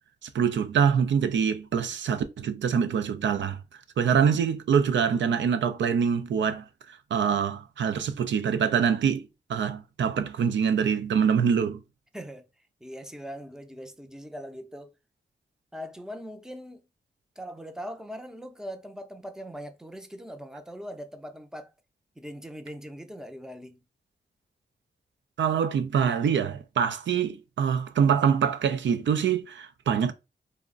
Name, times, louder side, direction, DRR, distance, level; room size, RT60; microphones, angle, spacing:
voice 1, 0.2-3.6 4.0-6.6 7.1-9.2 9.5-11.8 25.4-30.1, right 7 dB, 85° right, 0.4 m, -25 dB
voice 2, 12.1-12.4 12.8-14.9 15.7-16.8 17.4-21.7 22.2-23.8, equal, 5° right, 0.5 m, -41 dB
2.4 x 2.1 x 3.6 m
wide cardioid pair, 75°, 19 cm